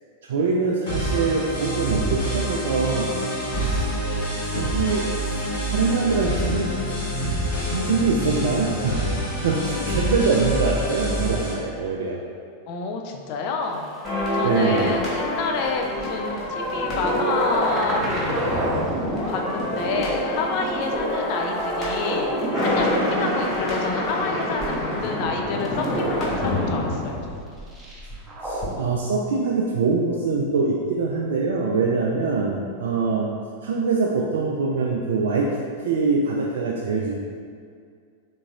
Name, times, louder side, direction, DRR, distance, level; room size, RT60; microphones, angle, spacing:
voice 1, 0.2-3.2 3.5-3.8 4.5-6.7 7.7-9.0 9.4-12.2 14.4-14.9 28.4-33.3 33.6-35.5 35.8-37.2, right 4 dB, 60° right, -2 dB, 0.3 m, -24 dB
sound 1, 0.9-11.5, right 1 dB, 65° left, 1.3 m, -26 dB
voice 2, 12.7-13.8 14.3-18.7 19.3-22.3 22.6-27.3, left 4 dB, 45° left, 3 dB, 0.4 m, -29 dB
sound 2, 13.9-26.6 27.7-28.9, right 1 dB, 10° right, 0.7 m, -30 dB
sound 3, 14.0-28.2 28.4-28.7, left 1 dB, 25° left, 1.5 m, -28 dB
3.8 x 3.7 x 2.4 m, 2.2 s
figure-of-eight pair, 90°, 0 cm